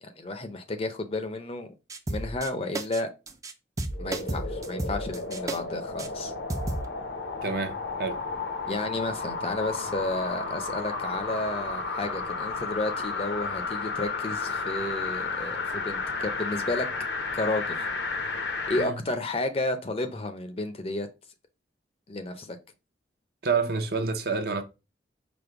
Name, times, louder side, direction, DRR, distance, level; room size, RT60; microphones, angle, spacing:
voice 1, 0.0-1.7 2.1-3.1 4.0-6.3 8.7-16.9 17.3-17.9 18.7-21.1 22.1-22.6, left 2 dB, 30° left, 0.6 m, -32 dB
sound 1, 1.9-2.5 2.7-3.0 3.3-3.5 3.8-5.6 6.0-6.1 6.5-6.8, right 1 dB, 20° right, 0.4 m, -32 dB
sound 2, 3.9-18.9 19.4-19.5, left 4 dB, 70° left, 0.7 m, -33 dB
voice 2, 7.4-8.2 18.8-18.9 23.4-24.6, right 4 dB, 55° right, 0.7 m, -28 dB
5.2 x 2.1 x 4.5 m
head